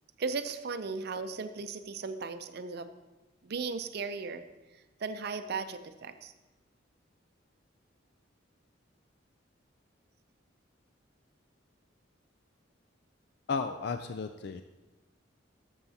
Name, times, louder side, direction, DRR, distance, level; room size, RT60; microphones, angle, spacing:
voice 1, 0.2-2.9 3.4-4.4 5.0-6.3, right 4 dB, 55° right, 9 dB, 0.5 m, -36 dB
voice 2, 13.5-14.6, left 5 dB, 60° left, 8 dB, 0.4 m, -34 dB
13.5 x 7.1 x 2.8 m, 1.1 s
head